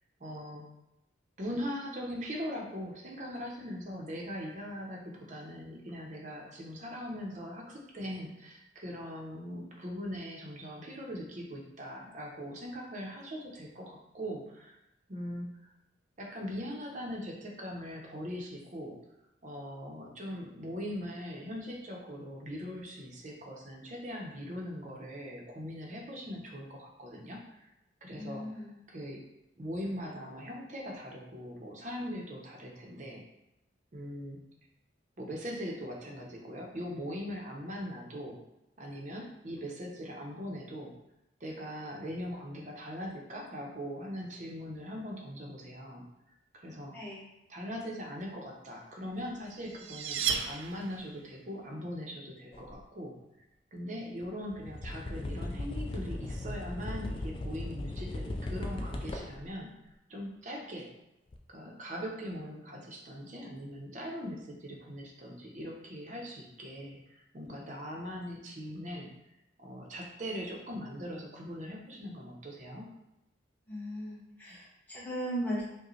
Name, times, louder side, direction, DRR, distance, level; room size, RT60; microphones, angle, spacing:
voice 1, 0.2-0.6 1.4-14.8 15.1-15.5 16.2-19.0 19.4-27.7 28.0-29.2 29.6-33.2 33.9-34.4 35.2-38.4 38.8-40.9 41.4-46.0 46.5-47.0 47.5-53.2 53.7-59.7 60.1-60.9 61.5-69.1 69.6-72.9 74.5-74.6, equal, 40° right, -1 dB, 0.7 m, -41 dB
voice 2, 28.1-28.8 46.9-47.2 73.7-75.6, equal, 10° left, -8 dB, 1.1 m, -37 dB
sound 1, 49.2-51.3, right 6 dB, 85° right, 0.4 m, -34 dB
sound 2, 52.5-52.8 54.2-54.3 54.5-59.5 61.3-61.4, left 1 dB, 30° left, 0.3 m, -37 dB
4.8 x 2.2 x 3.1 m, 0.90 s
head